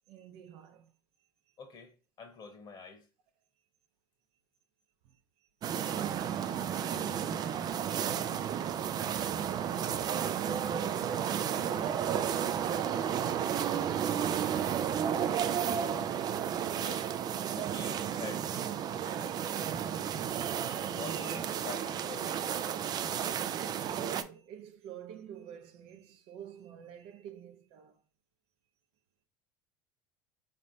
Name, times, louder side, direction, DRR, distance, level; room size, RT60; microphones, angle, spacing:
voice 1, 0.1-0.9 1.5-1.6 5.0-5.5 6.1-14.4 23.9-28.0, right 8 dB, 60° right, 0.7 m, -50 dB
voice 2, 1.6-3.0 16.7-17.1 17.5-18.5 20.0-20.2 20.7-22.4, left 5 dB, 40° left, 1.2 m, -46 dB
sound 1, 5.6-24.2, right 9 dB, 40° right, 0.4 m, -32 dB
4.1 x 3.2 x 2.6 m
hypercardioid pair, 90°, 11 cm